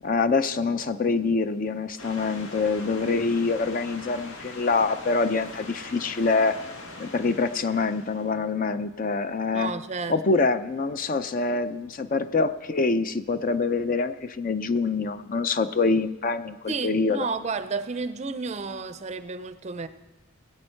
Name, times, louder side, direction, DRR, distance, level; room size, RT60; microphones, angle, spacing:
voice 1, 0.0-6.6 7.0-9.7 10.1-17.3, left 4 dB, 40° left, 11 dB, 0.5 m, -25 dB
sound 1, 2.0-8.4, left 2 dB, 90° left, 1.6 m, -42 dB
voice 2, 9.5-10.5 16.7-19.9, right 4 dB, 30° right, 12 dB, 0.5 m, -32 dB
20.5 x 8.5 x 4.4 m, 1.2 s
head